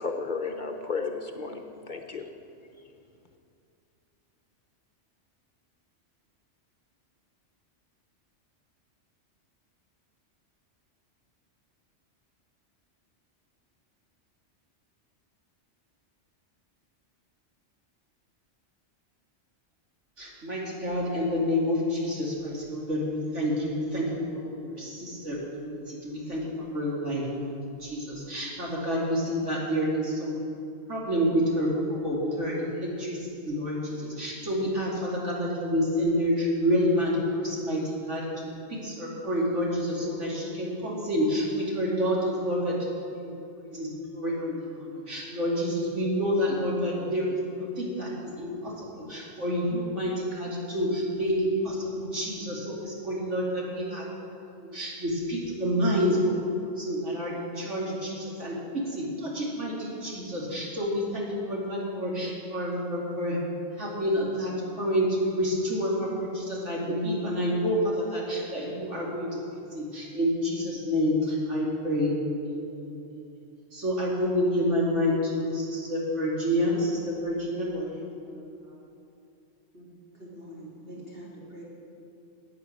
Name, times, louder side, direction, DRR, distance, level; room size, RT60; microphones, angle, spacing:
voice 1, 0.0-2.3, left 4 dB, 45° left, 4 dB, 0.8 m, -33 dB
voice 2, 20.2-27.5 27.8-30.4 30.9-54.1 54.6-56.4 56.6-63.4 63.8-69.4 69.7-72.2 72.5-73.4 73.7-78.8, equal, 85° right, -4 dB, 3.0 m, -29 dB
voice 3, 79.7-81.6, right 1 dB, 55° right, -6 dB, 3.9 m, -45 dB
11.5 x 8.8 x 8.5 m, 2.6 s
omnidirectional pair, 1.2 m